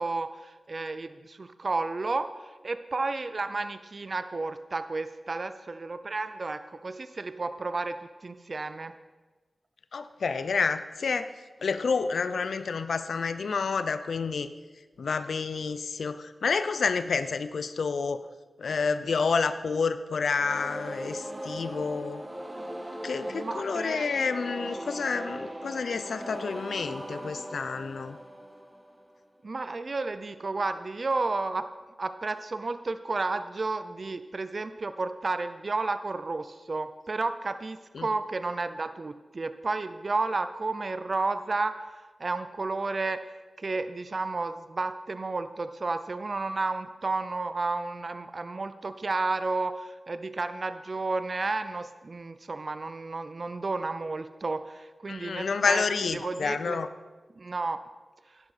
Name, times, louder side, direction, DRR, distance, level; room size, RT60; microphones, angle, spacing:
voice 1, 0.0-8.9 22.8-24.1 29.4-31.7 32.0-55.8 56.1-56.8 57.4-57.8, right 3 dB, 55° right, 11 dB, 0.5 m, -32 dB
voice 2, 9.9-11.3 11.6-14.5 15.0-18.2 18.6-22.2 23.0-28.2 37.9-38.1 55.1-56.9, left 5 dB, 90° left, 11 dB, 0.5 m, -29 dB
sound 1, 20.3-29.2, right 1 dB, 20° right, 1.4 m, -39 dB
11.0 x 11.0 x 4.2 m, 1.3 s
wide cardioid pair, 70°, 0 cm